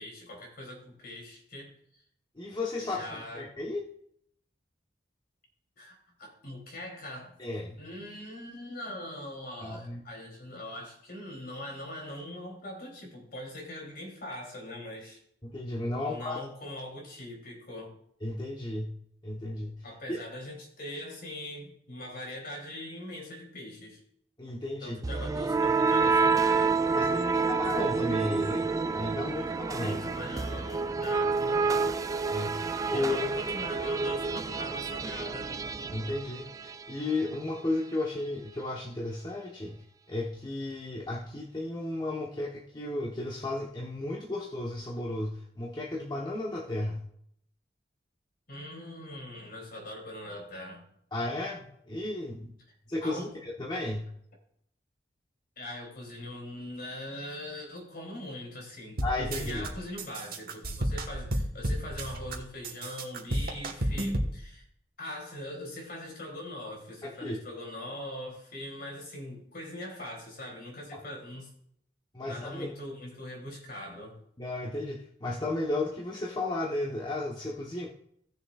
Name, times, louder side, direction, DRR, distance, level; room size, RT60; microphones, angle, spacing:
voice 1, 0.0-1.7 2.8-3.4 5.8-7.4 7.8-15.2 16.0-18.0 19.8-24.0 24.8-26.8 29.8-31.9 32.9-35.5 48.5-50.9 53.0-53.4 55.6-64.7 65.0-71.5 72.2-74.1, left 1 dB, 55° left, 0 dB, 3.2 m, -42 dB
voice 2, 2.4-3.0 3.3-3.8 7.4-7.8 9.6-10.0 15.4-16.4 18.2-19.0 19.2-20.2 24.4-25.0 26.9-28.7 28.9-30.1 32.3-33.3 35.9-47.0 51.1-52.5 52.9-54.1 59.0-59.7 67.0-67.4 70.9-71.0 72.1-72.7 74.4-77.9, left 2 dB, 25° left, -3 dB, 1.1 m, -34 dB
sound 1, 25.0-36.9, right 4 dB, 20° right, 0.3 m, -28 dB
sound 2, 59.0-59.7 60.0-62.4 62.6-64.3, right 1 dB, 55° right, 1.3 m, -31 dB
17.5 x 6.8 x 2.4 m, 0.69 s
head